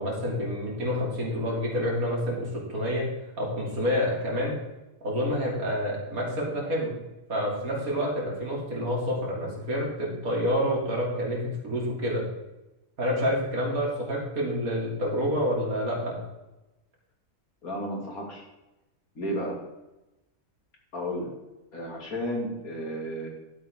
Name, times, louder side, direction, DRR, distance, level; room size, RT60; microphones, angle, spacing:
voice 1, 0.0-3.0 3.4-4.5 5.0-6.9 7.3-12.2 13.0-16.2, equal, 80° right, -3 dB, 3.6 m, -28 dB
voice 2, 17.6-18.4 19.1-19.6 20.9-21.3 21.7-23.3, equal, 85° left, -1 dB, 3.0 m, -32 dB
12.0 x 8.2 x 3.7 m, 1.0 s
omnidirectional pair, 1.5 m